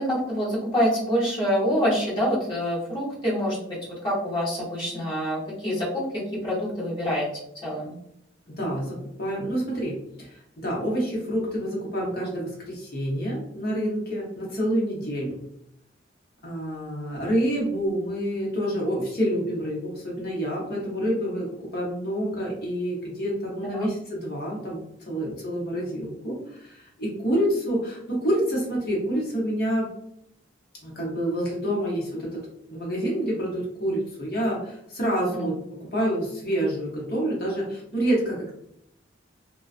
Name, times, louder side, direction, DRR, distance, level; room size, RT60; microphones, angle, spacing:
voice 1, 0.0-3.6 3.9-7.3 7.6-7.9 23.7-23.9 35.3-35.4, equal, 25° left, -7 dB, 1.0 m, -26 dB
voice 2, 8.5-15.4 16.4-29.9 30.8-32.4 32.7-35.6 35.9-38.6, equal, 55° left, -4 dB, 0.9 m, -28 dB
2.3 x 2.2 x 2.4 m, 0.74 s
head